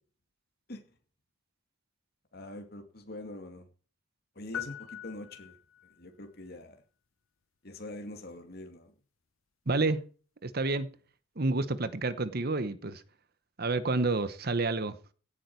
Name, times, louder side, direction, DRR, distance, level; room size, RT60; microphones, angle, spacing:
voice 1, 2.3-3.7 4.4-5.6 5.8-6.8 7.6-8.9, left 1 dB, 50° left, 2.3 m, -44 dB
sound 1, 4.5-6.0, left 9 dB, 80° left, 0.7 m, -42 dB
voice 2, 9.7-10.0 10.4-10.9 11.4-13.0 13.6-14.9, right 3 dB, 50° right, 1.0 m, -29 dB
16.5 x 8.7 x 4.6 m
head